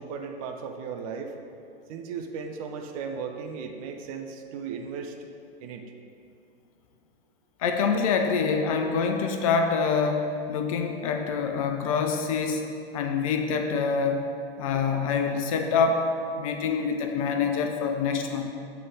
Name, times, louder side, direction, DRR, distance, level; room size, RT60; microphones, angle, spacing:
voice 1, 0.0-1.3 1.9-5.3 5.6-5.8, right 5 dB, 35° right, 4 dB, 0.6 m, -36 dB
voice 2, 7.6-12.6 12.9-14.3 14.6-16.1 16.4-18.5, left 5 dB, 35° left, 5 dB, 0.5 m, -26 dB
8.0 x 3.8 x 5.1 m, 2.5 s
figure-of-eight pair, 100°, 31 cm